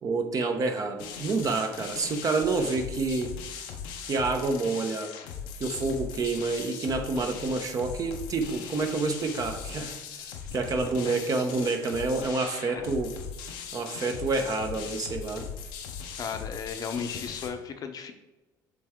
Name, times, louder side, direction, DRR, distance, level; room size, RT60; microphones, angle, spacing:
voice 1, 0.0-3.3 4.1-5.1 5.6-10.0 10.2-13.1 13.7-15.5, right 3 dB, 45° right, 5 dB, 0.9 m, -28 dB
sound 1, 1.0-17.5, left 7 dB, 85° left, 0.8 m, -39 dB
voice 2, 16.2-18.1, left 6 dB, 50° left, 6 dB, 0.8 m, -35 dB
7.5 x 3.4 x 3.7 m, 1.1 s
supercardioid pair, 90°, 8 cm